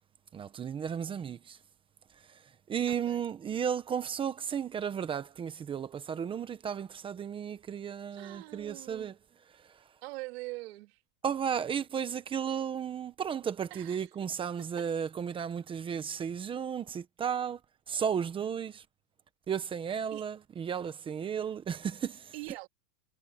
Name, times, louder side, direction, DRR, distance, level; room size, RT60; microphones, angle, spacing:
voice 1, 0.3-1.6 2.3-2.4 2.7-9.2 11.2-17.6 17.9-18.8 19.5-22.3, right 8 dB, 15° right, 0.9 m, -34 dB
voice 2, 2.9-3.2 8.1-9.1 10.0-11.0 13.7-14.1 14.8-14.9 20.1-20.3 22.3-22.7, right 23 dB, 60° right, 2.9 m, -43 dB
supercardioid pair, 165°, 34 cm